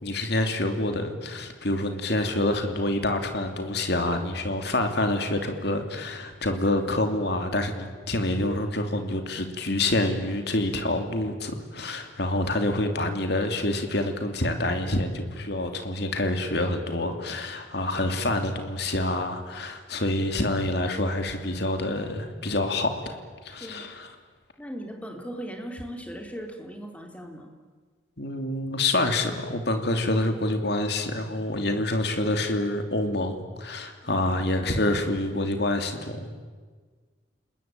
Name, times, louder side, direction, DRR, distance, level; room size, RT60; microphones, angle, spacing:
voice 1, 0.0-23.2 23.4-24.1 28.2-36.4, left 1 dB, 55° left, 6 dB, 2.9 m, -27 dB
voice 2, 24.6-27.5 34.0-34.3, equal, 5° left, 3 dB, 3.1 m, -38 dB
29.5 x 20.5 x 9.1 m, 1.5 s
head